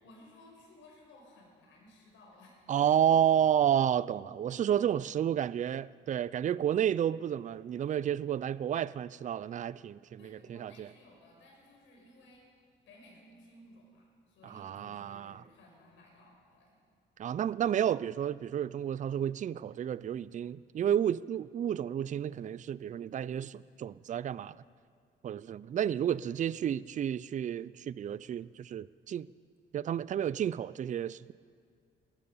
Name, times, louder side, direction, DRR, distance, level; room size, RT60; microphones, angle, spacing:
voice 1, 0.0-3.1 10.2-12.4 12.9-16.7, left 1 dB, 80° left, -1 dB, 5.5 m, -58 dB
voice 2, 2.7-10.9 14.4-15.4 17.2-24.6 25.2-29.3 29.7-31.3, right 9 dB, 40° right, 19 dB, 0.4 m, -31 dB
18.5 x 14.0 x 5.5 m, 2.1 s
cardioid pair, 90°, 20 cm